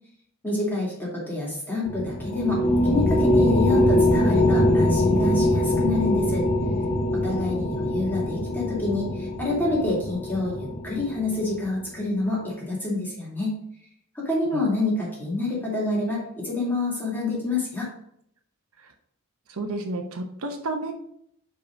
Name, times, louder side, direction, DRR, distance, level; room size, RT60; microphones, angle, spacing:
voice 1, 0.4-6.4 7.2-13.6 14.1-17.9, left 2 dB, 10° left, -5 dB, 2.3 m, -27 dB
sound 1, 1.9-11.6, left 1 dB, 25° left, 0.9 m, -23 dB
voice 2, 19.5-20.9, right 2 dB, 70° right, 4 dB, 0.8 m, -31 dB
5.0 x 4.9 x 5.1 m, 0.71 s
head